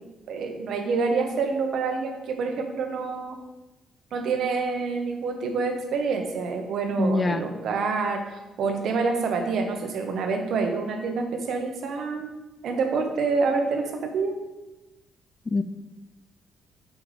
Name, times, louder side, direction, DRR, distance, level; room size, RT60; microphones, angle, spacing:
voice 1, 0.3-3.4 4.1-12.3 12.6-14.4, right 4 dB, 65° right, 4 dB, 1.2 m, -27 dB
voice 2, 7.0-7.4 15.5-15.6, left 2 dB, 20° left, 11 dB, 0.3 m, -24 dB
6.9 x 5.2 x 5.1 m, 1.0 s
cardioid pair, 150°, 0 cm